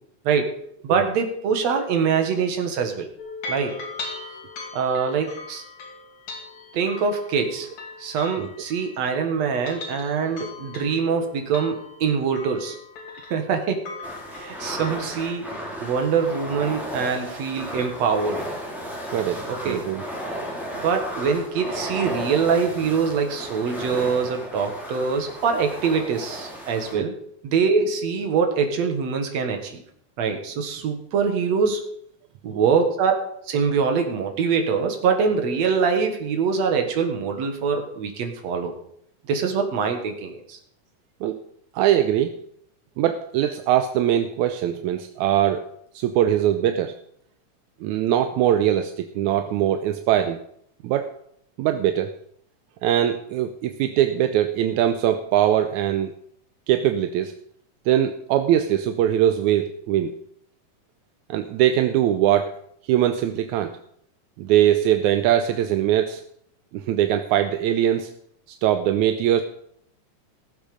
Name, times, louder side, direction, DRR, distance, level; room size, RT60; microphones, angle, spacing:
voice 1, 0.8-3.1 3.5-3.7 4.7-5.6 6.7-7.7 8.0-12.8 13.3-13.8 14.3-15.4 15.8-18.4 19.5-19.8 20.7-27.1 27.4-29.8 30.2-31.8 32.4-33.1 33.5-38.7 39.3-40.6, right 5 dB, 60° right, 5 dB, 2.6 m, -24 dB
sound 1, 3.2-9.1 9.5-15.2, left 3 dB, 60° left, 3.7 m, -39 dB
sound 2, 14.0-26.9, equal, ahead, 3.6 m, -34 dB
voice 2, 19.1-20.0 26.9-27.1 32.5-32.6 41.2-41.4 41.8-42.4 43.0-45.7 46.0-46.9 47.8-50.4 50.8-51.1 51.6-52.1 52.8-56.1 56.7-57.3 57.9-60.1 61.3-62.5 62.9-63.7 64.4-66.2 66.7-68.1 68.6-69.4, right 11 dB, 80° right, 7 dB, 2.0 m, -21 dB
17.5 x 7.7 x 5.1 m, 0.69 s
omnidirectional pair, 3.7 m